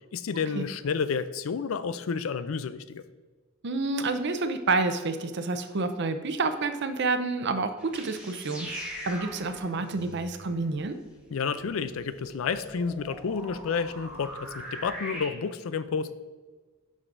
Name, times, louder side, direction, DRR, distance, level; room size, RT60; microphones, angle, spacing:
voice 1, 0.1-3.0 11.3-16.1, left 5 dB, 80° left, 13 dB, 0.4 m, -30 dB
voice 2, 3.6-11.0, right 3 dB, 60° right, 9 dB, 0.6 m, -29 dB
sound 1, 7.8-15.3, equal, 5° right, 1.5 m, -42 dB
9.0 x 6.3 x 2.6 m, 1.3 s
head